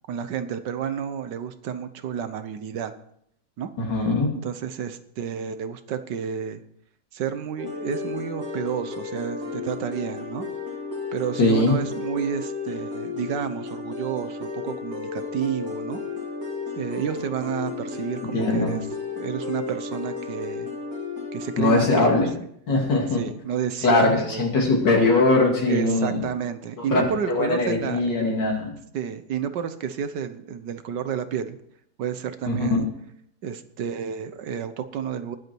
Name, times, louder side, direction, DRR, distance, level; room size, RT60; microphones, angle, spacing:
voice 1, 0.1-2.9 3.6-3.7 4.4-6.6 7.1-10.5 11.1-16.0 16.8-18.9 19.1-20.7 21.3-22.1 23.2-24.5 25.7-28.0 28.9-31.6 32.0-32.9 33.4-35.4, right 8 dB, 75° right, 11 dB, 1.6 m, -30 dB
voice 2, 3.8-4.3 11.4-11.8 18.3-18.8 21.6-22.3 22.7-23.2 23.8-26.2 26.8-28.7 32.5-32.8, left 2 dB, 85° left, -1 dB, 3.2 m, -21 dB
sound 1, 7.6-22.0, left 4 dB, 55° right, 3.0 m, -33 dB
20.5 x 8.2 x 4.6 m, 0.71 s
omnidirectional pair, 1.9 m